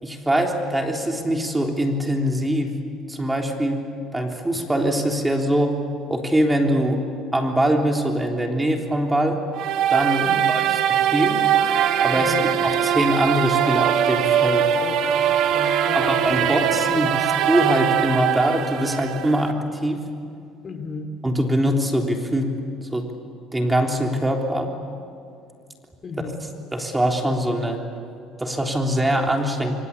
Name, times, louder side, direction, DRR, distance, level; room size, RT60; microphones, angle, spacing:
voice 1, 0.0-2.7 3.1-3.8 4.1-5.8 6.1-7.1 7.3-9.4 9.9-10.8 11.0-11.4 12.0-12.4 12.6-14.7 15.9-20.0 21.2-22.5 22.9-23.1 23.5-24.7 26.7-27.8 28.4-29.8, right 1 dB, 10° right, 2 dB, 3.6 m, -22 dB
sound 1, 9.5-19.5, right 9 dB, 65° right, 1.7 m, -21 dB
voice 2, 10.2-10.5 12.1-12.5 14.8-16.5 16.9-17.3 20.6-21.1 26.0-26.4, left 4 dB, 40° left, 7 dB, 2.8 m, -35 dB
25.5 x 25.0 x 8.6 m, 2.3 s
supercardioid pair, 90°, 0 cm